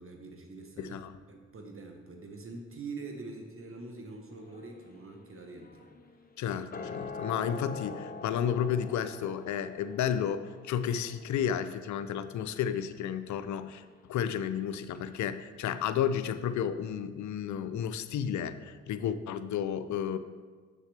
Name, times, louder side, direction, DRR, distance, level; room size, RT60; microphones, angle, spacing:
voice 1, 0.0-5.9, right 3 dB, 45° right, 3 dB, 1.0 m, -44 dB
voice 2, 0.8-1.1 6.4-13.8 14.1-20.2, left 8 dB, 70° left, 12 dB, 0.5 m, -32 dB
sound 1, 4.3-14.7 14.9-15.0, left 4 dB, 30° left, 0.7 m, -46 dB
7.3 x 6.2 x 3.3 m, 1.5 s
supercardioid pair, 45°, 30 cm